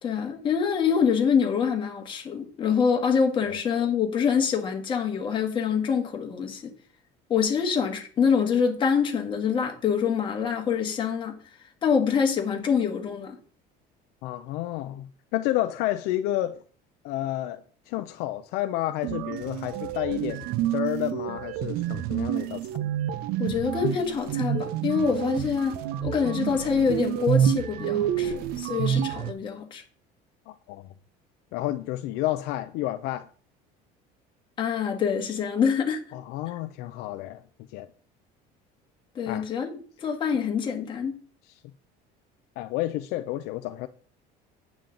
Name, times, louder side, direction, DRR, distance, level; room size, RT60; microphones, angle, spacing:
voice 1, 0.0-6.7 7.3-11.4 11.8-13.4 23.4-29.8 34.6-36.0 39.1-39.7 40.0-41.2, left 6 dB, 25° left, 1.5 m, -25 dB
voice 2, 14.2-16.6 17.0-22.6 30.5-30.9 31.5-33.3 36.1-37.4 37.7-37.9 39.3-39.4 42.6-43.9, left 14 dB, 65° left, 0.5 m, -30 dB
sound 1, 19.0-29.3, right 10 dB, 60° right, 0.7 m, -28 dB
8.9 x 7.2 x 3.8 m
cardioid pair, 175°, 18 cm